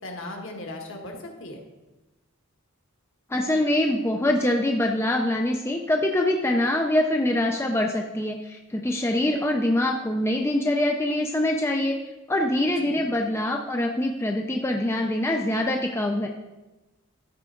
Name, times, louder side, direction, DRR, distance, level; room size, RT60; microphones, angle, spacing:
voice 1, 0.0-1.6 12.8-13.1, left 1 dB, 60° left, 2 dB, 1.3 m, -38 dB
voice 2, 3.3-12.0 12.3-16.3, left 1 dB, 10° left, 1 dB, 0.4 m, -24 dB
13.0 x 4.6 x 3.8 m, 1.1 s
head